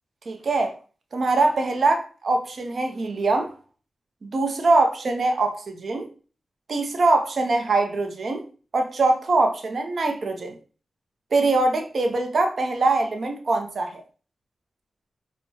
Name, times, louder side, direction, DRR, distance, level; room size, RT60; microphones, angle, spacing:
voice 1, 0.3-0.7 1.1-3.5 4.2-6.1 6.7-8.4 8.7-10.6 11.3-14.0, right 3 dB, 65° right, 0.6 m, -23 dB
4.5 x 2.2 x 2.7 m
cardioid pair, 55°, 0 cm